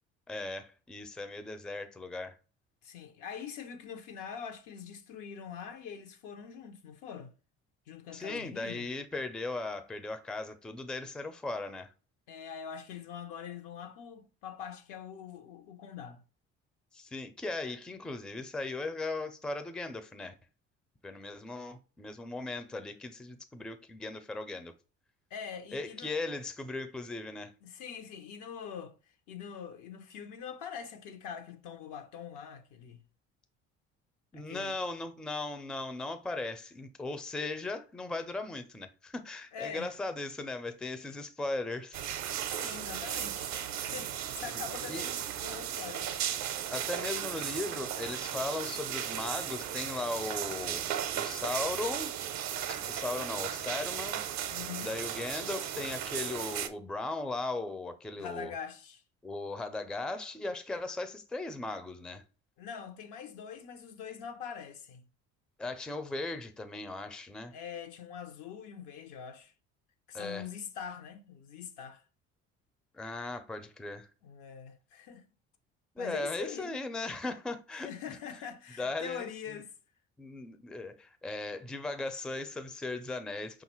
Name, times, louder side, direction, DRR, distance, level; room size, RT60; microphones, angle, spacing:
voice 1, 0.3-2.3 8.1-11.9 16.9-20.3 21.0-24.7 25.7-27.5 34.3-42.0 44.9-45.1 46.7-50.9 51.1-52.2 52.7-54.2 54.8-58.5 59.2-62.2 65.6-67.5 70.1-70.5 72.9-74.1 76.0-78.2 78.8-79.6 80.2-83.6, left 2 dB, ahead, 0.4 m, -37 dB
voice 2, 2.8-7.3 7.9-8.9 12.3-16.2 25.3-26.1 27.6-29.0 29.3-33.0 34.3-34.7 39.5-39.9 42.5-43.6 43.8-46.1 54.5-54.9 58.2-59.0 62.6-65.0 67.5-69.5 70.1-72.0 74.2-75.3 76.0-76.8 77.7-79.7, left 7 dB, 70° left, 0.7 m, -43 dB
sound 1, 41.9-56.7, right 10 dB, 55° right, 0.6 m, -36 dB
5.1 x 2.4 x 3.0 m
hypercardioid pair, 65°, 34 cm